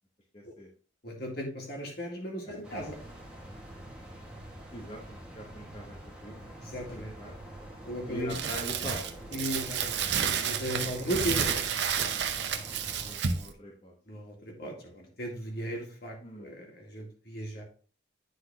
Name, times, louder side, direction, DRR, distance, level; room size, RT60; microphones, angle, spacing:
voice 1, 0.3-0.7 2.4-2.6 4.7-6.5 7.0-7.4 8.1-9.0 12.9-13.9 16.2-16.5, equal, 30° left, -2 dB, 1.0 m, -43 dB
voice 2, 1.0-3.0 6.6-7.1 7.8-8.3 9.3-12.3 14.1-17.6, equal, 55° left, 0 dB, 2.0 m, -37 dB
sound 1, 2.6-13.1, right 1 dB, 5° right, 1.4 m, -46 dB
Crumpling crinkling, 8.3-13.5, right 7 dB, 65° right, 0.7 m, -31 dB
9.7 x 3.9 x 3.4 m, 0.41 s
head